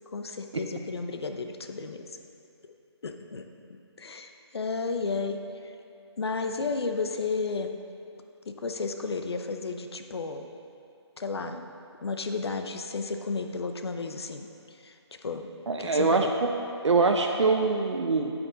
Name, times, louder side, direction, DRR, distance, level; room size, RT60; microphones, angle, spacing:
voice 1, 0.1-2.0 3.0-3.4 4.0-5.7 6.2-7.7 8.4-10.5 11.2-11.6 12.0-14.5 14.8-14.9 15.2-15.5 15.8-16.3, left 4 dB, 65° left, 6 dB, 0.8 m, -32 dB
voice 2, 15.7-16.5 16.8-18.3, right 3 dB, 85° right, 3 dB, 0.7 m, -24 dB
9.0 x 8.8 x 4.0 m, 2.5 s
hypercardioid pair, 165°, 15 cm